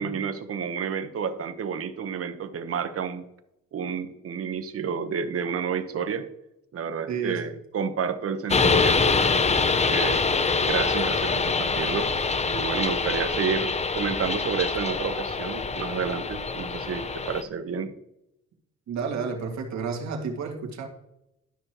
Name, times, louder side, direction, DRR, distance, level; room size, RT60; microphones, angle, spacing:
voice 1, 0.0-3.2 3.7-6.2 6.7-9.2 9.9-10.2 10.6-12.1 12.5-17.9, right 6 dB, 50° right, 9 dB, 1.1 m, -30 dB
voice 2, 7.1-7.4 18.9-20.9, right 5 dB, 65° right, 2 dB, 2.1 m, -31 dB
sound 1, 8.5-17.4, left 4 dB, 20° left, 0.7 m, -25 dB
12.5 x 6.3 x 3.0 m, 0.85 s
cardioid pair, 90°, 30 cm